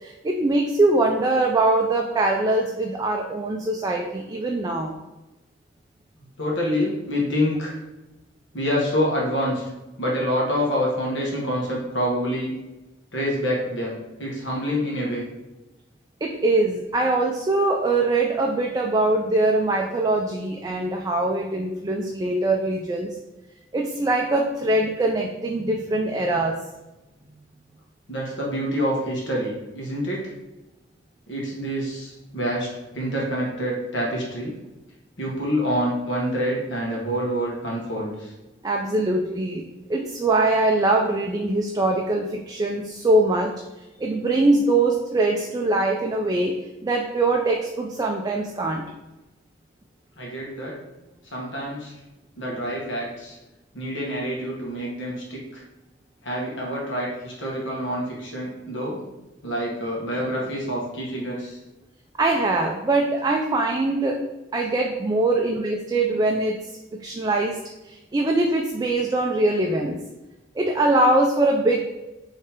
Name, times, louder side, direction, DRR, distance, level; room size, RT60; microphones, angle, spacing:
voice 1, 0.0-4.9 16.2-23.2 23.7-26.6 38.6-39.6 39.9-43.5 44.0-46.5 46.8-48.8 62.2-64.2 64.5-66.6 67.0-67.6 67.8-70.0 70.6-71.8, right 2 dB, 20° right, 1 dB, 0.3 m, -22 dB
voice 2, 6.4-7.7 8.5-9.6 10.0-12.5 13.1-15.2 28.1-30.2 31.3-32.7 32.9-34.5 35.2-38.3 50.2-50.8 51.3-52.0 52.4-53.4 53.7-55.6 56.2-59.0 59.4-61.6, equal, 75° left, -4 dB, 1.4 m, -27 dB
3.6 x 3.2 x 4.4 m, 1.0 s
head